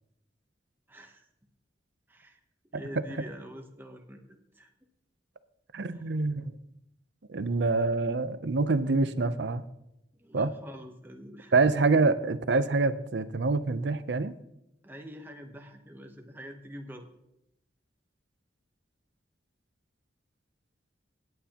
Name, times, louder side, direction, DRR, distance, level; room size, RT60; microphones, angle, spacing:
voice 1, 0.9-1.3 2.1-2.4 2.7-4.7 5.9-6.0 10.2-11.5 14.8-17.1, equal, 10° right, 3 dB, 0.9 m, -45 dB
voice 2, 5.7-6.6 7.3-9.6 10.3-10.5 11.5-14.3, right 3 dB, 65° right, 13 dB, 0.6 m, -26 dB
17.5 x 9.3 x 2.9 m, 0.84 s
head